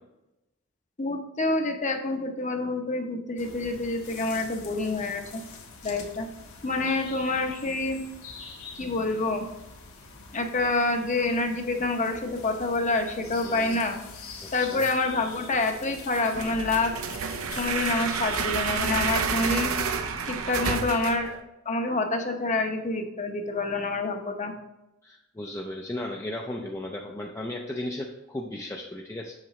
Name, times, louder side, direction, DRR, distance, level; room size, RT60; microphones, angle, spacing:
voice 1, 1.0-5.4 5.8-6.3 6.6-8.0 8.7-9.5 10.3-14.0 14.5-16.9 17.6-19.8 20.2-21.4 21.6-24.5, left 3 dB, 35° left, 5 dB, 0.8 m, -27 dB
sound 1, 3.4-18.9, left 4 dB, 80° left, 1.4 m, -45 dB
voice 2, 13.4-13.8 14.4-14.9 25.0-29.3, left 1 dB, 15° left, 0 dB, 0.4 m, -35 dB
sound 2, 16.3-21.4, right 5 dB, 75° right, 0.6 m, -29 dB
7.5 x 7.0 x 3.1 m, 0.93 s
head